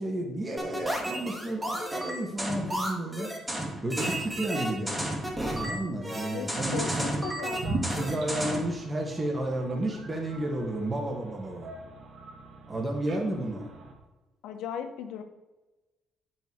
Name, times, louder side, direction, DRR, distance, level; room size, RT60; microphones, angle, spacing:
voice 1, 0.0-3.3 3.8-5.0 5.6-7.2 8.0-11.7 12.7-13.7, right 1 dB, 25° right, 0 dB, 1.9 m, -32 dB
sound 1, 0.6-8.7, right 1 dB, 10° right, 2.1 m, -32 dB
voice 2, 6.2-8.3 14.4-15.2, left 7 dB, 90° left, 7 dB, 1.0 m, -38 dB
sound 2, 7.5-13.9, right 3 dB, 65° right, 1.9 m, -40 dB
8.7 x 6.1 x 4.7 m, 1.1 s
cardioid pair, 90°, 0 cm